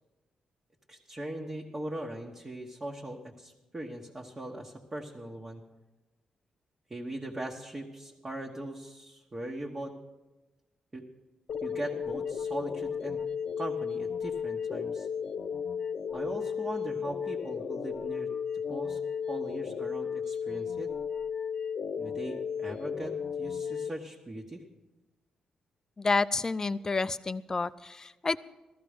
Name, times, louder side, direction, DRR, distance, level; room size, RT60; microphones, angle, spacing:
voice 1, 0.9-5.6 6.9-9.9 10.9-11.0 11.6-13.2 13.6-15.1 16.1-18.3 18.7-19.0 19.3-20.9 22.0-24.6, right 1 dB, 25° right, -2 dB, 1.5 m, -40 dB
sound 1, 11.5-23.9, left 7 dB, 70° left, 0.9 m, -34 dB
voice 2, 26.0-28.4, left 3 dB, 30° left, 15 dB, 0.5 m, -29 dB
14.5 x 14.0 x 5.1 m, 1.1 s
cardioid pair, 95°, 2 cm